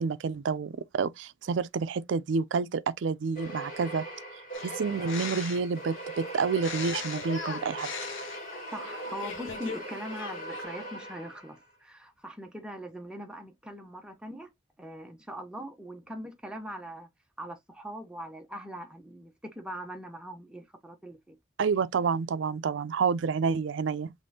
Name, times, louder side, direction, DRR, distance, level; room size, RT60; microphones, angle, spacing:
voice 1, 0.0-4.0 4.6-7.9 21.6-24.1, right 5 dB, 75° right, 0.4 m, -29 dB
sound 1, 3.3-11.6, right 1 dB, 45° left, 2.2 m, -40 dB
sound 2, 4.5-5.8 6.5-9.8 10.1-10.6, left 5 dB, 90° left, 0.9 m, -39 dB
voice 2, 8.7-14.5 14.8-17.1 17.4-21.4, equal, 5° right, 0.7 m, -41 dB
5.2 x 3.1 x 2.6 m
head